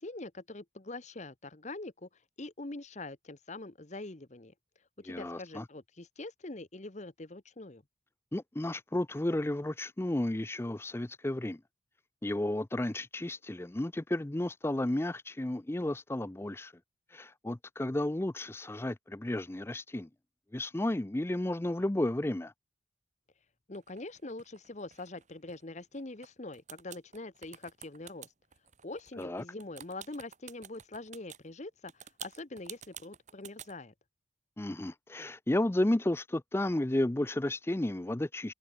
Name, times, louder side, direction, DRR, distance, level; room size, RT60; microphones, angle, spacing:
voice 1, 0.0-2.1 2.4-4.5 5.0-7.8 23.7-28.3 28.8-31.9 32.2-33.9, left 2 dB, 40° left, 1.1 m, -44 dB
voice 2, 5.1-5.7 8.3-11.6 12.2-16.7 17.1-20.1 20.5-22.5 29.2-29.4 34.6-38.5, left 1 dB, 15° left, 0.4 m, -32 dB
sound 1, 23.7-26.3 26.5-31.4 31.9-33.7, right 9 dB, 40° right, 1.7 m, -49 dB
head